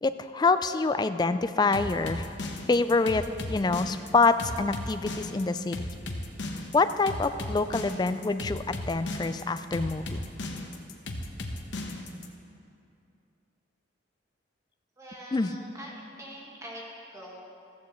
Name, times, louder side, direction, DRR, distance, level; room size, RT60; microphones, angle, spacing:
voice 1, 0.0-2.3 2.7-5.9 6.7-10.2 15.3-15.5, left 3 dB, 20° left, 11 dB, 0.3 m, -26 dB
sound 1, 1.7-12.3, left 1 dB, 70° left, 1.0 m, -36 dB
voice 2, 15.0-16.8 17.1-17.4, equal, 15° right, -4 dB, 1.7 m, -44 dB
14.5 x 13.5 x 3.1 m, 2.6 s
head